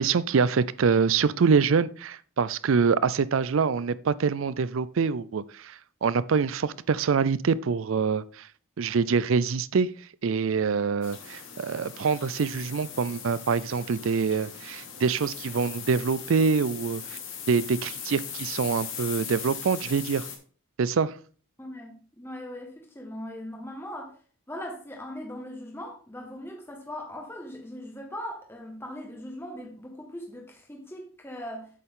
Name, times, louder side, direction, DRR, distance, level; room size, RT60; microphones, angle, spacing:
voice 1, 0.0-8.5 8.8-9.9 10.2-17.2 17.5-20.3 20.8-21.1, right 5 dB, 65° right, 0.4 m, -25 dB
sound 1, 11.0-20.4, left 7 dB, 60° left, 1.8 m, -39 dB
voice 2, 21.6-24.1 24.5-31.7, left 1 dB, 10° left, 1.4 m, -39 dB
8.3 x 6.9 x 3.7 m
head